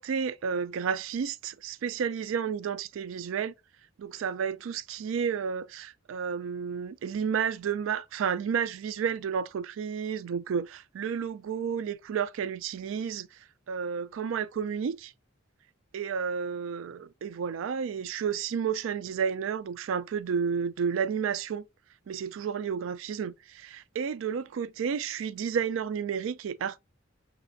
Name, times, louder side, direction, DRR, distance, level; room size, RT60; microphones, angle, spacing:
voice 1, 0.0-3.5 4.0-13.4 13.7-15.1 15.9-21.6 22.1-26.8, right 7 dB, 75° right, 0.3 m, -31 dB
5.9 x 3.2 x 2.5 m
head